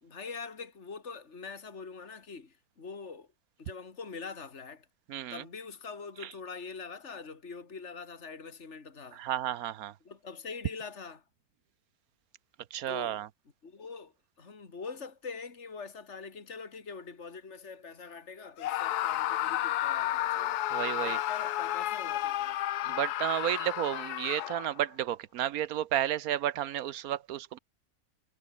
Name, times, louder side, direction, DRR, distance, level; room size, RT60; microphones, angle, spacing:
voice 1, 0.0-3.3 3.6-4.9 5.3-9.2 10.0-11.2 12.9-13.2 13.6-20.6 21.0-22.6, left 5 dB, 45° left, 2.9 m, -44 dB
voice 2, 5.1-5.4 9.1-9.9 12.7-13.3 20.7-21.2 22.8-27.6, right 11 dB, 65° right, 1.1 m, -32 dB
Screaming, 18.6-24.8, left 13 dB, 75° left, 1.2 m, -32 dB
omnidirectional pair, 1.7 m